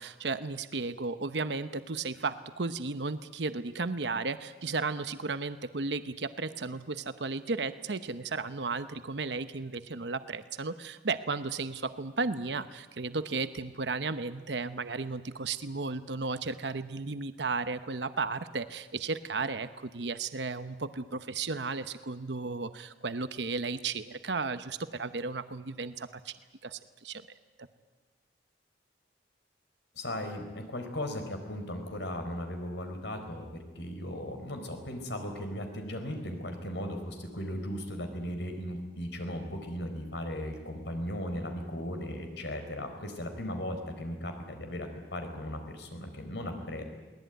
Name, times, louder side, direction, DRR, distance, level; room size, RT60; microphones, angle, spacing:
voice 1, 0.0-26.3 26.6-27.2, right 4 dB, 80° right, 11 dB, 0.9 m, -34 dB
voice 2, 30.0-33.5 33.7-46.8, left 1 dB, 80° left, 6 dB, 4.3 m, -37 dB
22.5 x 19.0 x 9.3 m, 1.3 s
head